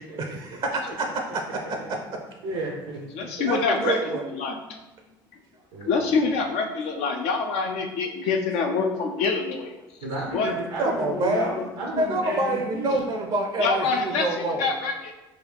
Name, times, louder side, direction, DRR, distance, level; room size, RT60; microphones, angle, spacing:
voice 1, 0.2-2.0 3.4-4.2 10.8-11.5 12.0-14.7, right 2 dB, 45° right, 3 dB, 0.5 m, -27 dB
voice 2, 2.4-3.3 5.7-6.0 10.0-13.0, right 1 dB, 85° right, -3 dB, 0.7 m, -32 dB
voice 3, 3.1-4.0 4.3-4.8 5.9-9.7 10.3-10.5 13.6-14.9, left 4 dB, 65° left, 3 dB, 0.4 m, -25 dB
3.9 x 2.3 x 3.3 m, 1.1 s
hypercardioid pair, 65°, 11 cm